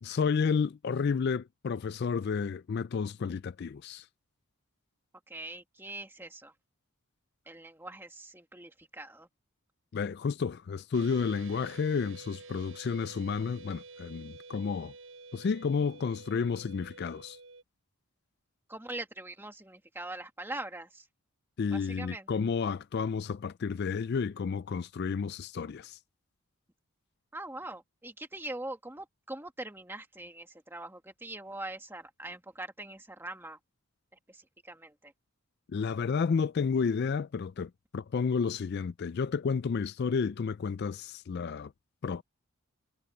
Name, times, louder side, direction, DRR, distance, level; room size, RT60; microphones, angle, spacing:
voice 1, 0.0-4.1 9.9-14.9 15.3-17.4 21.6-26.0 35.7-41.7 42.0-42.2, left 5 dB, 45° left, 0.3 m, -31 dB
voice 2, 5.3-6.5 7.5-9.3 18.7-21.1 21.7-22.3 27.3-33.6 34.3-35.1, right 2 dB, 10° right, 1.7 m, -42 dB
sound 1, 10.9-17.6, right 3 dB, 65° right, 5.7 m, -50 dB
head